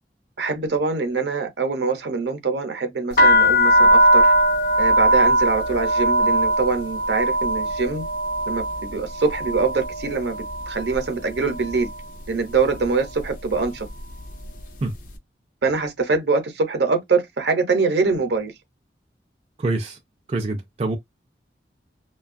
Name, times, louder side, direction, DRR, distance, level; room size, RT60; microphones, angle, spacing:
voice 1, 0.4-4.3 4.8-8.0 8.5-10.4 10.7-11.9 12.3-13.9 15.6-18.5, right 4 dB, 70° right, 0.7 m, -24 dB
sound 1, 3.1-11.0 11.3-12.0 12.6-12.9 13.2-14.6, right 1 dB, 50° left, 0.5 m, -20 dB
voice 2, 19.6-20.0 20.3-21.0, right 2 dB, 35° right, 0.3 m, -25 dB
2.6 x 2.3 x 2.5 m
head